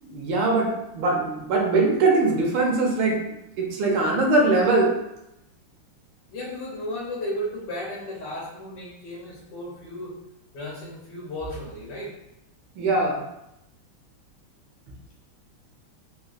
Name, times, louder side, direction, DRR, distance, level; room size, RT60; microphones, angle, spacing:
voice 1, 0.0-3.2 3.6-4.9 12.8-13.2, right 3 dB, 75° right, 0 dB, 1.3 m, -21 dB
voice 2, 6.3-10.1 10.5-12.1, left 1 dB, 65° left, -4 dB, 1.2 m, -34 dB
3.9 x 2.2 x 2.4 m, 0.87 s
omnidirectional pair, 2.3 m